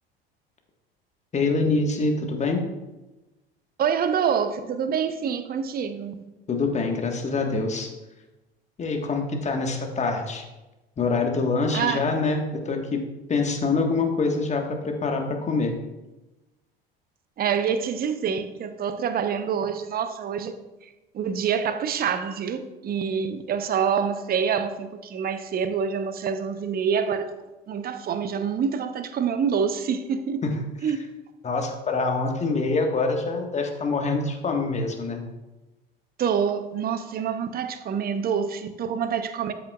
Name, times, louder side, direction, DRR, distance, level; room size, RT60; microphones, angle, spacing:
voice 1, 1.3-2.6 6.5-7.9 8.8-10.4 11.0-13.0 13.3-15.7 30.4-30.5 31.4-35.2, left 3 dB, 25° left, 3 dB, 1.5 m, -25 dB
voice 2, 3.8-6.2 11.7-12.0 17.4-20.6 21.1-27.3 27.7-30.4 30.8-31.0 36.2-39.5, right 7 dB, 30° right, 10 dB, 0.8 m, -26 dB
13.0 x 7.3 x 2.4 m, 1.1 s
figure-of-eight pair, 70°, 29 cm